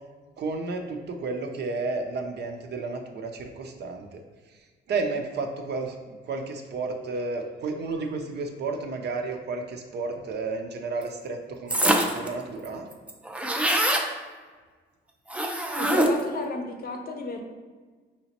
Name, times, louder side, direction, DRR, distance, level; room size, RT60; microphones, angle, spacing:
voice 1, 0.4-4.2 4.9-12.9, right 3 dB, 60° right, 4 dB, 0.6 m, -32 dB
sound 1, 11.7-12.3 12.6-12.7 12.9-14.1 15.3-16.3, right 1 dB, 5° right, 0.4 m, -24 dB
voice 2, 15.8-17.4, left 3 dB, 50° left, 3 dB, 0.6 m, -32 dB
4.8 x 2.9 x 2.9 m, 1.4 s
cardioid pair, 90°, 20 cm